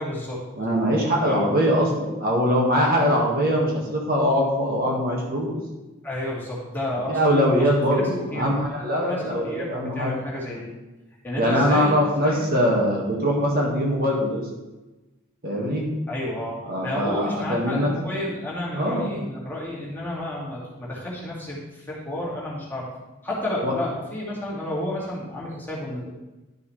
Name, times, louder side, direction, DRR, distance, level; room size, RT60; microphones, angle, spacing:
voice 1, 0.0-0.4 1.3-1.4 6.0-7.2 7.5-8.0 8.3-8.5 9.0-10.7 11.2-12.0 12.2-12.4 16.1-22.9 23.2-26.1, left 1 dB, 10° left, -6 dB, 2.4 m, -31 dB
voice 2, 0.6-5.6 7.1-10.1 11.4-14.5 15.4-15.8 16.7-17.9 18.7-19.1 23.6-23.7, equal, 45° right, -2 dB, 1.8 m, -22 dB
12.0 x 7.0 x 3.3 m, 1.1 s
head